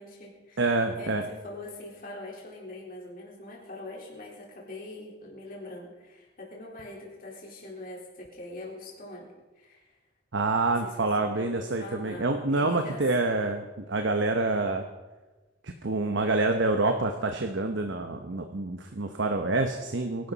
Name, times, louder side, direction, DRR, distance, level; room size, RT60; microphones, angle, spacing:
voice 1, 0.0-9.9 10.8-13.1, left 2 dB, 50° left, -3 dB, 3.9 m, -43 dB
voice 2, 0.6-1.2 10.3-14.8 15.6-20.3, right 2 dB, 70° right, 5 dB, 1.0 m, -27 dB
22.5 x 12.0 x 4.1 m, 1.2 s
head